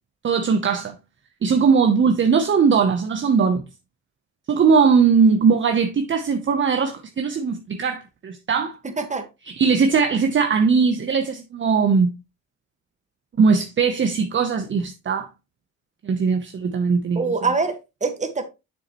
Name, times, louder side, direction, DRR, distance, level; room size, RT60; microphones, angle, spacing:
voice 1, 0.2-0.9 1.4-3.6 4.5-8.7 9.5-12.1 13.4-15.3 16.0-17.2, right 5 dB, 40° right, 0.9 m, -19 dB
voice 2, 8.8-9.3 17.1-18.4, right 4 dB, 25° right, 1.7 m, -24 dB
7.0 x 7.0 x 3.1 m
cardioid pair, 90°, 30 cm